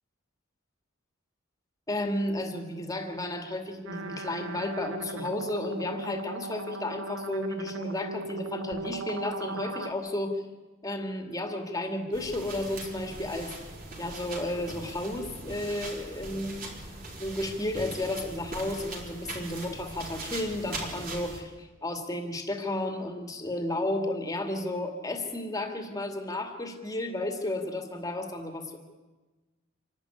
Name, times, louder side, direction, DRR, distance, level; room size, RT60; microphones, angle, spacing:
voice 1, 1.9-10.4 10.8-13.5 14.0-16.6 17.2-28.8, left 1 dB, 15° left, 5 dB, 2.2 m, -33 dB
sound 1, 3.9-9.9, right 2 dB, 70° right, 1.7 m, -38 dB
sound 2, 12.1-21.4, right 2 dB, 40° right, 4.5 m, -41 dB
27.0 x 12.0 x 9.8 m, 1.2 s
head